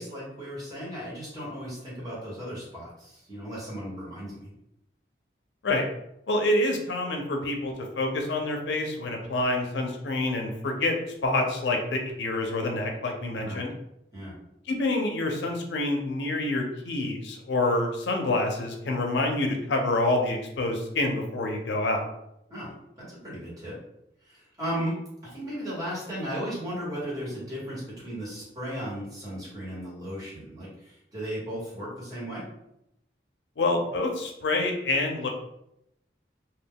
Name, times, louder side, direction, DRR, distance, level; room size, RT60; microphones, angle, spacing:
voice 1, 0.0-4.5 13.4-13.7 14.1-14.3 22.5-23.8 24.2-25.0 25.2-32.4, equal, 20° right, -7 dB, 1.1 m, -36 dB
voice 2, 6.3-11.0 11.2-13.7 14.7-22.0 33.6-35.3, left 2 dB, 80° left, 2 dB, 0.5 m, -27 dB
2.2 x 2.2 x 3.5 m, 0.81 s
head